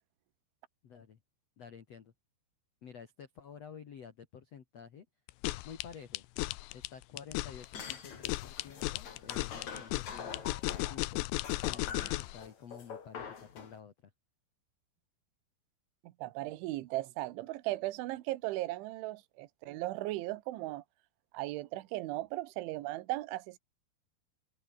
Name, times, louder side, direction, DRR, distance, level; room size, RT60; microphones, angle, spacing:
voice 1, 0.8-1.2 1.6-2.1 2.8-5.1 5.6-6.2 6.7-10.4 10.7-11.2 11.7-14.1, left 7 dB, 55° left, 1.8 m, -50 dB
sound 1, 5.3-12.4, left 20 dB, 85° left, 2.6 m, -35 dB
sound 2, 7.6-11.1 11.4-13.8, left 6 dB, 40° left, 3.8 m, -45 dB
voice 2, 16.2-20.8 21.3-23.6, right 18 dB, 80° right, 3.4 m, -37 dB
omnidirectional pair, 5.8 m